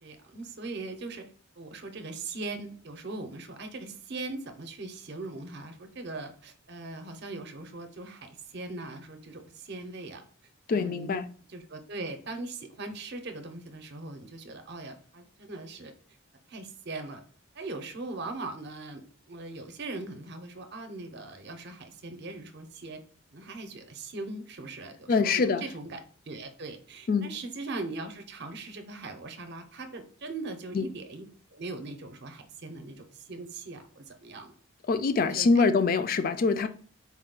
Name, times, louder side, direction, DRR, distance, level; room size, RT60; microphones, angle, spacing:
voice 1, 0.0-1.3 1.6-10.2 10.7-11.1 11.5-15.9 16.5-17.2 17.5-23.0 23.3-26.0 26.2-31.3 31.5-34.5 35.2-35.6, right 3 dB, 50° right, 0.6 m, -40 dB
voice 2, 10.7-11.2 25.1-25.6 27.1-27.3 30.7-30.9 34.9-36.7, left 4 dB, 45° left, 0.3 m, -24 dB
4.2 x 2.3 x 3.7 m
head